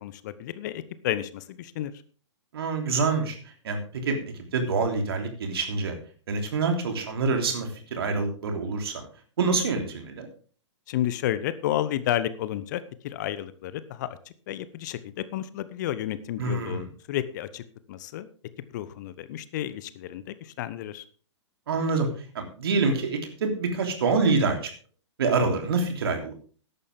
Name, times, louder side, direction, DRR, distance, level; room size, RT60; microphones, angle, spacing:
voice 1, 0.0-1.9 10.9-14.2 14.5-17.6 17.9-18.3 18.7-21.0, left 12 dB, 40° left, 15 dB, 0.8 m, -31 dB
voice 2, 2.5-3.4 3.6-4.2 4.5-5.9 6.3-9.0 9.4-10.3 16.4-16.9 21.7-22.1 22.3-24.7 25.2-26.3, right 4 dB, 55° right, 4 dB, 3.2 m, -26 dB
14.0 x 11.0 x 3.6 m, 0.41 s
figure-of-eight pair, 115°, 15 cm